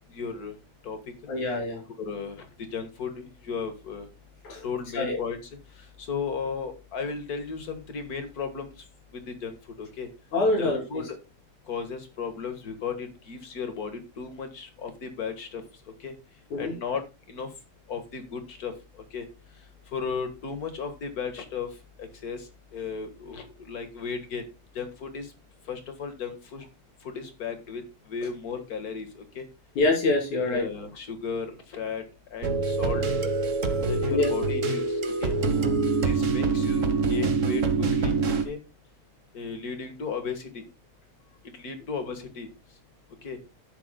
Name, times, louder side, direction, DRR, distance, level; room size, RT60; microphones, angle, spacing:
voice 1, 0.1-0.5 0.8-1.0 2.0-2.5 2.7-4.1 4.6-5.5 6.0-8.7 9.1-10.1 10.6-11.2 11.7-15.6 16.0-16.1 16.6-17.0 17.3-17.5 17.9-18.7 19.1-19.3 19.9-21.7 22.0-24.5 24.7-25.3 25.7-26.6 27.0-27.8 28.1-29.5 30.5-32.0 32.3-33.0 33.9-35.3 36.0-38.1 38.4-38.6 39.3-40.6 41.5-42.5 43.2-43.4, left 5 dB, 40° left, 7 dB, 1.6 m, -35 dB
voice 2, 1.3-1.8 4.4-4.6 4.9-5.2 10.3-11.0 16.5-16.7 29.8-30.7 34.1-34.3, left 2 dB, 75° left, 1 dB, 4.5 m, -25 dB
sound 1, 32.4-38.4, right 4 dB, 70° right, 0.7 m, -25 dB
11.5 x 9.6 x 2.2 m, 0.26 s
omnidirectional pair, 3.4 m